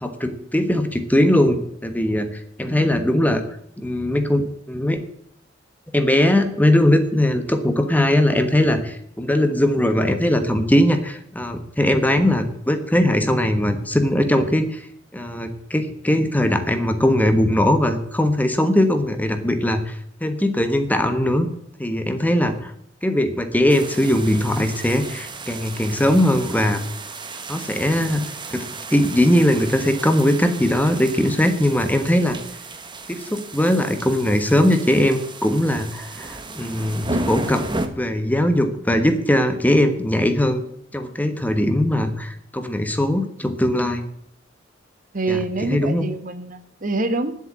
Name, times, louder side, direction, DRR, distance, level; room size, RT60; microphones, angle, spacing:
voice 1, 0.0-3.4 3.8-5.0 5.9-14.8 15.1-21.5 21.8-22.7 23.0-26.8 27.5-28.2 28.5-28.6 28.9-32.4 33.1-37.6 38.0-40.6 40.9-44.0 45.3-45.4 45.7-46.1, left 1 dB, 10° left, 8 dB, 1.2 m, -20 dB
sound 1, 23.7-37.9, right 2 dB, 25° right, 1.2 m, -34 dB
voice 2, 45.1-47.3, right 2 dB, 45° right, 10 dB, 1.3 m, -25 dB
10.0 x 7.9 x 8.6 m, 0.69 s
head